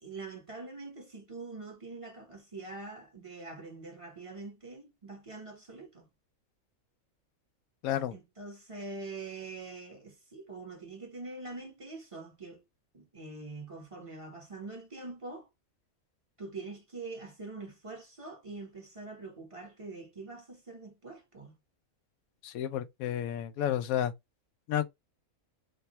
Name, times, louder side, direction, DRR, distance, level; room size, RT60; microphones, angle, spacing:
voice 1, 0.0-6.1 8.1-12.6 12.9-15.5 16.4-21.5, right 3 dB, 25° right, 1.3 m, -44 dB
voice 2, 7.8-8.1 22.4-24.1 24.7-24.8, left 11 dB, 80° left, 1.0 m, -31 dB
3.3 x 2.7 x 4.2 m
omnidirectional pair, 1.5 m